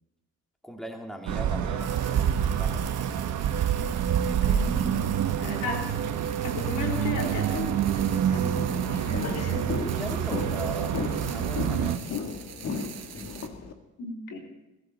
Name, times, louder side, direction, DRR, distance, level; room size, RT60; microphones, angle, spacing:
voice 1, 0.6-2.9 5.3-6.1 9.8-12.1, equal, ahead, 2 dB, 2.3 m, -40 dB
sound 1, 1.3-12.0, right 9 dB, 75° right, 1.2 m, -27 dB
sound 2, 1.8-13.5, right 8 dB, 55° right, 1.6 m, -45 dB
voice 2, 4.3-5.0 5.4-5.9 6.4-7.7 8.0-9.3 14.0-14.4, left 2 dB, 85° left, 1 dB, 3.6 m, -35 dB
sound 3, 8.5-13.7, left 5 dB, 55° left, 2.0 m, -35 dB
22.0 x 15.0 x 4.2 m, 1.0 s
cardioid pair, 90°, 30 cm